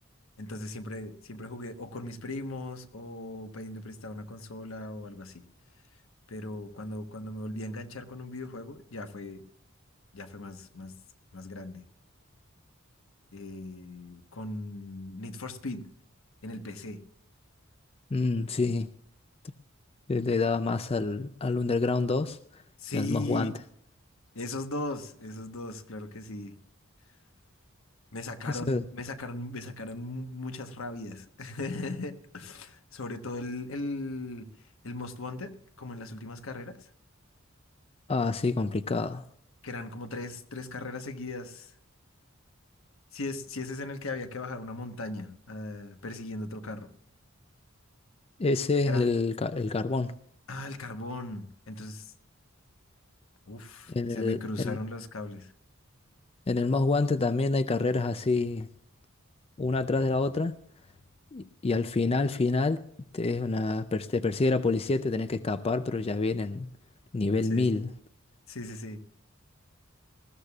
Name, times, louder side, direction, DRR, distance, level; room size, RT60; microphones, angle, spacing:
voice 1, 0.4-5.4 6.3-9.5 10.1-10.9 11.3-11.8 13.3-15.9 16.4-17.0 22.8-23.5 24.3-26.5 28.1-34.5 34.8-36.9 39.6-41.7 43.1-46.9 48.9-49.1 50.5-52.1 53.5-55.5 67.5-67.7 68.5-69.0, left 2 dB, 75° left, 1.2 m, -38 dB
voice 2, 18.1-18.9 20.1-22.6 22.9-23.5 28.5-28.8 38.1-39.2 48.4-50.1 53.9-54.8 56.5-58.7 59.6-60.5 61.3-62.8 63.1-66.7 67.1-67.9, left 3 dB, 30° left, 0.4 m, -27 dB
20.0 x 15.0 x 2.4 m
head